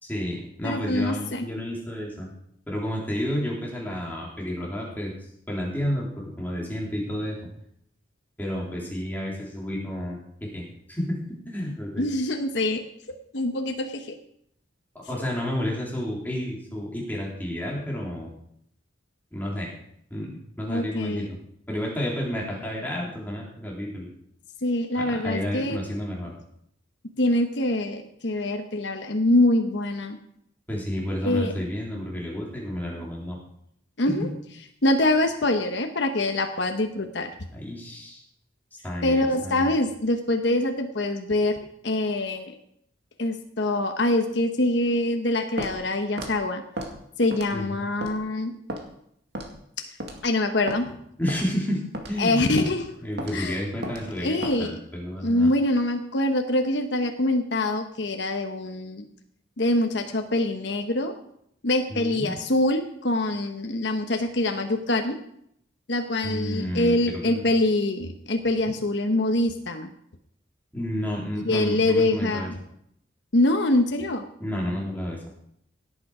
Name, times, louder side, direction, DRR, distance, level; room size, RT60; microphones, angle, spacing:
voice 1, 0.0-2.3 2.7-5.1 5.5-7.5 8.4-12.1 15.0-18.3 19.3-19.7 20.1-21.4 21.7-24.1 24.9-26.3 30.7-33.4 34.0-34.3 37.5-38.2 38.8-39.8 47.5-47.8 51.2-52.5 53.0-55.5 61.9-62.3 66.2-67.5 70.7-72.5 74.4-75.2, equal, 10° left, -3 dB, 3.6 m, -31 dB
voice 2, 0.6-1.4 12.0-12.8 13.3-14.2 20.7-21.3 24.6-25.8 27.2-30.2 31.2-31.5 34.0-34.3 34.8-37.3 39.0-41.6 41.8-42.5 43.2-46.6 47.2-48.5 50.2-51.0 52.2-52.9 53.3-53.6 54.2-54.7 55.2-59.0 59.6-61.1 61.6-65.2 65.9-69.9 71.4-72.6 73.3-74.2, left 1 dB, 60° left, 4 dB, 1.1 m, -24 dB
Walk footsteps, 45.6-45.8 46.2-46.3 46.8-46.9 47.3-47.6 48.0-48.2 48.7-48.8 49.4-49.6 50.0-50.2 50.7-50.8 51.3-51.5 51.9-52.2 52.6-52.7 53.2-53.4 53.8-54.0 54.4-54.6, right 1 dB, 55° right, 2.2 m, -33 dB
17.0 x 9.0 x 5.0 m, 0.73 s
head